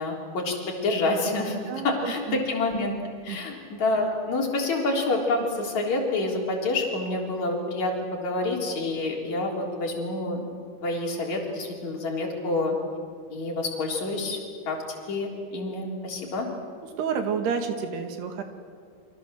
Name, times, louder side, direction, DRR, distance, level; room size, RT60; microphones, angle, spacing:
voice 1, 0.0-1.6 1.8-2.9 3.2-10.4 10.8-12.8 13.3-14.4 14.7-14.8 15.1-16.5, left 2 dB, 45° left, 0 dB, 4.7 m, -27 dB
voice 2, 1.7-2.4 3.3-3.4 17.0-18.4, right 6 dB, 75° right, 6 dB, 4.0 m, -30 dB
29.5 x 24.5 x 7.5 m, 2.1 s
omnidirectional pair, 4.8 m